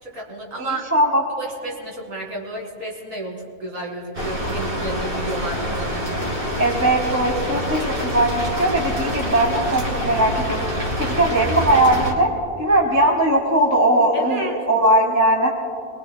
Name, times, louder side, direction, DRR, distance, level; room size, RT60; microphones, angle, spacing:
voice 1, 0.0-0.8 1.3-6.0 14.1-14.5, right 2 dB, 60° right, -2 dB, 2.6 m, -31 dB
voice 2, 0.6-1.2 6.6-10.6 11.0-12.3 12.6-15.5, right 1 dB, 10° right, -1 dB, 0.9 m, -19 dB
Rain, 4.1-12.1, equal, 30° right, 2.0 m, -26 dB
23.5 x 20.0 x 2.2 m, 2.5 s
omnidirectional pair, 1.7 m